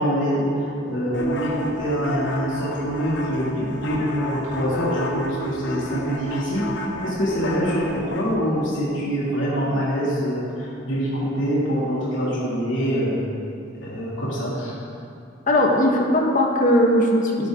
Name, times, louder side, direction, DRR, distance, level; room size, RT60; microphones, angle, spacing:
voice 1, 0.0-6.6 7.0-13.2 13.7-14.7, equal, 85° left, -7 dB, 2.9 m, -24 dB
sound 1, 1.1-8.3, equal, 65° left, 1.2 m, -32 dB
voice 2, 15.5-17.5, left 1 dB, 45° left, 0 dB, 1.7 m, -19 dB
12.0 x 11.5 x 3.9 m, 2.6 s
head